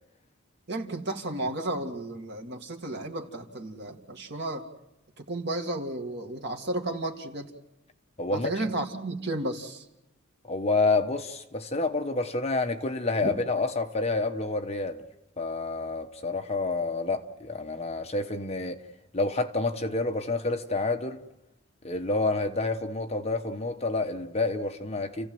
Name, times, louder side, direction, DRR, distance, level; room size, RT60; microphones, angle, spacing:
voice 1, 0.7-4.7 5.2-7.5 8.3-9.8 13.2-13.3, right 1 dB, 55° right, 2.3 m, -33 dB
voice 2, 8.2-8.6 10.4-15.0 15.4-18.8 19.1-21.2 21.8-25.3, left 3 dB, 30° left, 1.2 m, -28 dB
30.0 x 15.5 x 7.8 m
head